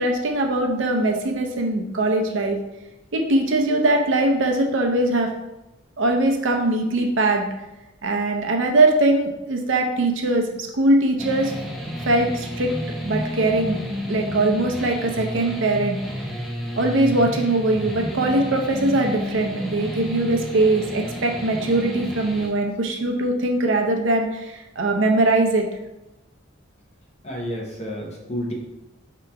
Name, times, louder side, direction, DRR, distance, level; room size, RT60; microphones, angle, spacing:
voice 1, 0.0-2.6 3.1-5.3 6.0-7.4 8.0-11.5 12.1-12.7 13.0-16.0 16.8-25.7, right 2 dB, 65° right, 3 dB, 0.6 m, -21 dB
sound 1, 11.2-22.5, left 1 dB, ahead, 0.5 m, -31 dB
voice 2, 27.2-28.5, equal, 30° left, -1 dB, 0.8 m, -30 dB
4.7 x 2.9 x 3.4 m, 0.97 s
head